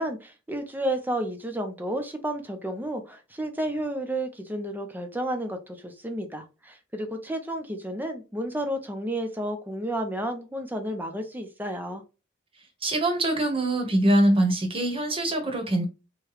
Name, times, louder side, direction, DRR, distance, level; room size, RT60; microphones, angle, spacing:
voice 1, 0.0-12.0, right 1 dB, 10° right, 0.6 m, -31 dB
voice 2, 12.8-15.9, right 1 dB, 25° right, 1.0 m, -23 dB
4.8 x 2.2 x 3.0 m
head